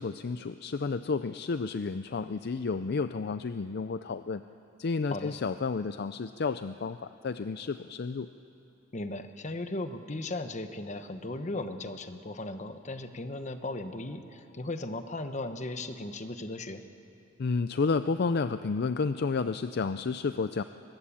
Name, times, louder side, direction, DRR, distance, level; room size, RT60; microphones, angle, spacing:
voice 1, 0.0-4.4 4.8-8.3 17.4-20.6, left 4 dB, 55° left, 11 dB, 0.5 m, -31 dB
voice 2, 8.9-16.8, left 2 dB, 40° left, 9 dB, 1.1 m, -37 dB
23.5 x 20.0 x 8.5 m, 2.9 s
head